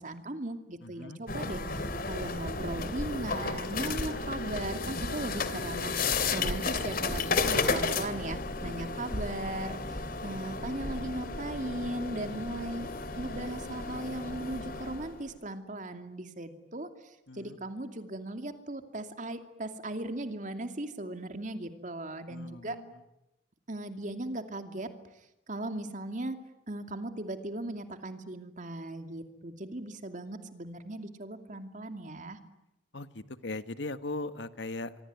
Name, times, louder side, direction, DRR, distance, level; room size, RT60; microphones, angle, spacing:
voice 1, 0.0-6.0 6.3-12.9 13.1-22.8 23.7-24.9 25.5-26.4 26.7-32.4, right 1 dB, 45° right, 8 dB, 2.6 m, -38 dB
voice 2, 0.8-1.2 8.6-9.0 17.3-17.6 22.3-22.9 32.9-35.0, left 2 dB, 75° left, 12 dB, 1.5 m, -39 dB
sound 1, 1.3-15.2, left 3 dB, 50° left, 2.6 m, -33 dB
25.0 x 24.5 x 9.6 m, 0.90 s
head